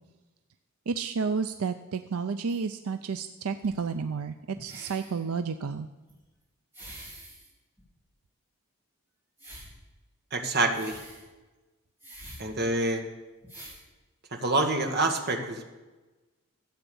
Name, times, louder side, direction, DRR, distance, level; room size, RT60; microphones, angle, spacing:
voice 1, 0.9-5.9, right 5 dB, 80° right, 9 dB, 0.5 m, -31 dB
sound 1, 2.5-2.6 3.6-4.0 4.5-5.2 6.1-6.2 6.7-7.5 7.8-7.9 9.4-9.8 10.7-11.3 12.0-12.5 13.1-13.2 13.4-13.8 14.7-14.8, right 1 dB, 10° right, 3.7 m, -46 dB
voice 2, 10.3-11.0 12.4-13.0 14.3-15.7, right 2 dB, 45° right, 3 dB, 1.6 m, -27 dB
13.5 x 8.2 x 7.0 m, 1.2 s
head